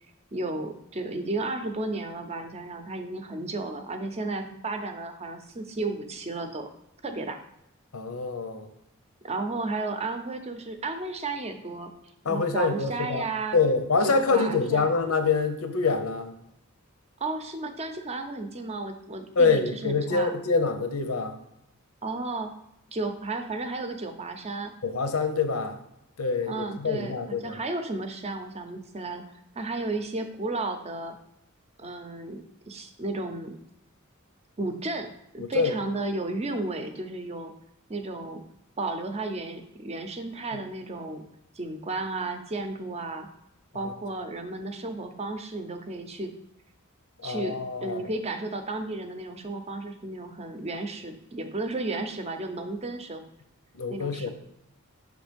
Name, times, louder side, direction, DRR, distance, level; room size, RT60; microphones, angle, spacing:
voice 1, 0.3-6.7 7.0-7.4 9.2-11.9 12.3-13.6 14.0-14.9 17.2-20.4 22.0-22.5 22.9-24.7 26.5-31.2 31.8-33.6 34.6-37.5 37.9-38.4 38.8-41.2 41.5-43.3 43.7-46.3 47.2-53.2 53.9-54.3, right 2 dB, 30° right, 7 dB, 0.7 m, -33 dB
voice 2, 7.9-8.7 12.2-13.2 13.5-16.3 19.4-21.4 24.8-25.8 26.2-27.6 35.4-35.7 47.2-48.0 53.7-54.3, left 4 dB, 85° left, 8 dB, 0.8 m, -25 dB
6.2 x 3.4 x 5.1 m, 0.82 s
head